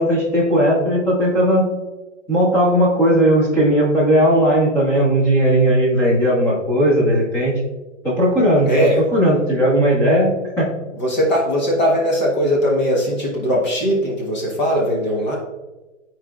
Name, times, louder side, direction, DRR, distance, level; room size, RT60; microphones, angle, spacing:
voice 1, 0.0-1.7 2.3-7.5 8.0-8.7 9.0-10.7, equal, 5° left, -7 dB, 1.2 m, -16 dB
voice 2, 8.7-9.0 11.0-15.4, equal, 35° left, -2 dB, 1.4 m, -19 dB
10.5 x 4.6 x 2.4 m, 1.1 s
hypercardioid pair, 165°, 37 cm